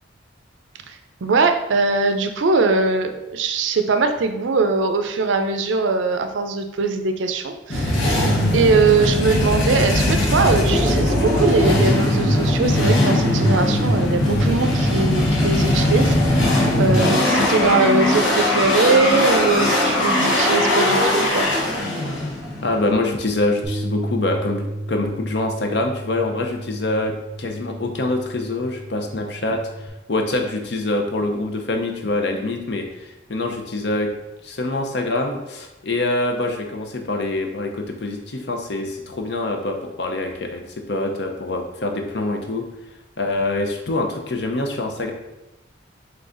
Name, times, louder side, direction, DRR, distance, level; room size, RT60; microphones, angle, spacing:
voice 1, 0.9-8.3 8.5-21.5, right 4 dB, 80° right, 7 dB, 0.5 m, -21 dB
sound 1, 7.7-22.9, left 1 dB, 85° left, 1.1 m, -19 dB
voice 2, 22.6-29.6 30.1-34.1 34.4-42.6 43.2-45.1, left 2 dB, 60° left, 3 dB, 0.6 m, -25 dB
Bass guitar, 23.6-29.9, right 1 dB, 5° left, 0.5 m, -33 dB
3.9 x 3.3 x 3.8 m, 0.94 s
head